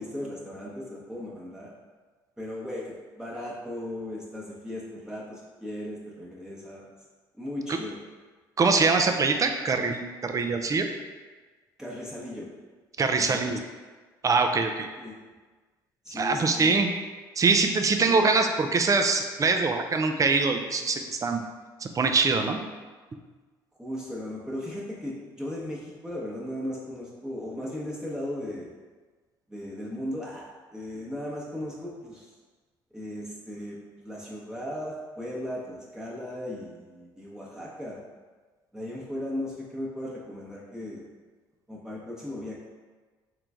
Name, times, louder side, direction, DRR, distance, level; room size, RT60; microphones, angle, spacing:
voice 1, 0.0-1.7 2.4-6.9 7.4-8.0 11.8-12.5 13.1-13.4 15.0-15.2 16.0-16.8 18.0-18.2 23.8-28.7 29.5-32.3 32.9-38.0 38.7-41.0 41.7-42.5, left 1 dB, 5° right, -6 dB, 1.0 m, -37 dB
voice 2, 8.6-10.9 13.0-13.6 14.2-14.9 16.1-16.9 17.4-21.4 21.8-22.6, right 4 dB, 30° right, 5 dB, 0.5 m, -23 dB
3.8 x 3.1 x 3.5 m, 1.4 s
hypercardioid pair, 65°, 10 cm